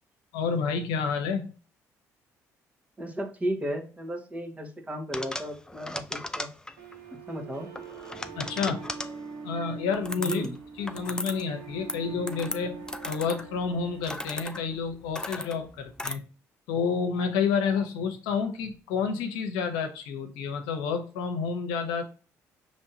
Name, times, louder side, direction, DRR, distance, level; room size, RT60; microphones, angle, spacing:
voice 1, 0.3-1.5 8.4-8.8 9.4-10.5 10.8-16.2 16.7-22.0, left 5 dB, 85° left, 5 dB, 0.8 m, -29 dB
voice 2, 3.0-6.5 7.3-7.7 10.2-10.5, equal, 20° right, 2 dB, 1.4 m, -34 dB
sound 1, 5.1-6.9 7.8-9.2 9.9-10.6 10.8-11.4 11.7-16.2, left 1 dB, 10° left, 0.5 m, -37 dB
sound 2, 6.8-14.8, right 5 dB, 90° right, 1.1 m, -43 dB
5.4 x 3.1 x 2.8 m, 0.36 s
supercardioid pair, 65°, 7 cm